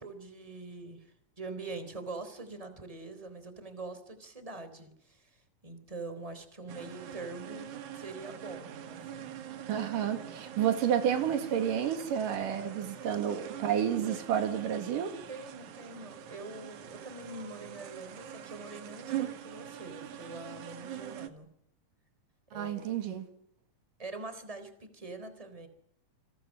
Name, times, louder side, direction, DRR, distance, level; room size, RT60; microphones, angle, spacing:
voice 1, 0.0-9.3 15.3-21.5 22.5-22.8 24.0-25.7, right 3 dB, 10° right, 3.5 m, -44 dB
sound 1, 6.7-21.3, right 10 dB, 70° right, 2.8 m, -43 dB
voice 2, 9.7-15.1 22.5-23.3, right 9 dB, 85° right, 3.7 m, -30 dB
29.0 x 26.0 x 7.6 m
omnidirectional pair, 3.7 m